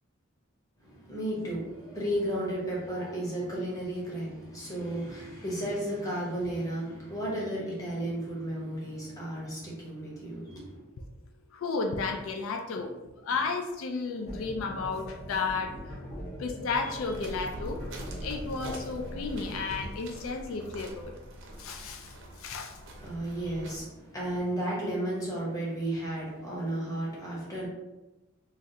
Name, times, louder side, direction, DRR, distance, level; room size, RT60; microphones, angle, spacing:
voice 1, 0.8-10.8 23.0-27.7, right 1 dB, 15° left, -5 dB, 0.9 m, -33 dB
voice 2, 11.5-12.9 13.2-15.7 16.4-17.8 18.2-21.1 21.6-22.8, left 4 dB, 70° left, 4 dB, 0.3 m, -33 dB
sound 1, 14.3-19.8, equal, 35° left, 1.2 m, -42 dB
sound 2, 16.9-23.8, right 1 dB, 60° right, 0.6 m, -43 dB
3.2 x 2.4 x 2.7 m, 1.0 s
head